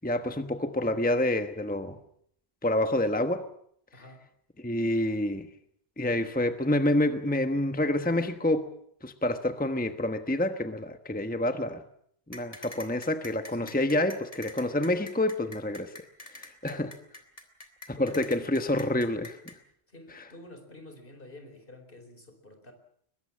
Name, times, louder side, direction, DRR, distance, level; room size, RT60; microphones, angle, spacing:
voice 1, 0.0-2.0 2.6-3.5 4.6-5.5 6.0-8.7 9.0-11.8 12.3-15.9 16.2-16.9 17.9-19.4 20.2-20.3, left 1 dB, 10° left, 8 dB, 1.1 m, -28 dB
voice 2, 3.9-4.2 13.5-13.8 16.6-16.9 17.9-18.3 19.9-22.7, left 1 dB, 60° left, 7 dB, 4.6 m, -48 dB
sound 1, 12.3-19.5, left 2 dB, 35° left, 3.2 m, -44 dB
22.5 x 21.5 x 7.4 m, 0.67 s
omnidirectional pair, 1.0 m